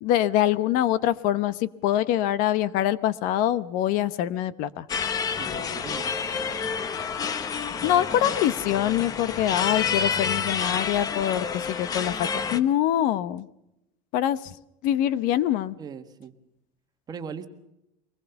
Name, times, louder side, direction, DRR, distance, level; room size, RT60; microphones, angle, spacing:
voice 1, 0.0-4.9 7.8-13.5 14.1-14.4 14.8-15.8, left 12 dB, 55° left, 17 dB, 0.9 m, -24 dB
sound 1, 4.9-12.6, left 6 dB, 20° left, 0.9 m, -29 dB
voice 2, 5.3-6.1 15.8-16.3 17.1-17.5, right 6 dB, 25° right, 8 dB, 1.5 m, -39 dB
24.0 x 20.5 x 7.0 m, 0.85 s
cardioid pair, 175°, 17 cm